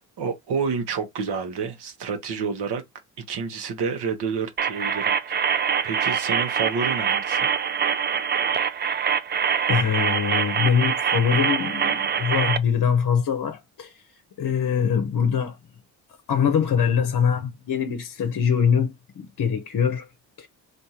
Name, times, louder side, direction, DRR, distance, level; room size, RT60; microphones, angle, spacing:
voice 1, 0.2-2.8 3.3-5.5 5.8-7.5, right 5 dB, 65° right, 0.9 m, -29 dB
sound 1, 4.6-12.6, right 7 dB, 25° right, 0.4 m, -24 dB
voice 2, 9.7-14.0 14.4-15.6 16.3-20.1 20.4-20.5, left 7 dB, 45° left, 0.8 m, -23 dB
3.5 x 2.5 x 2.8 m
supercardioid pair, 60°, 43 cm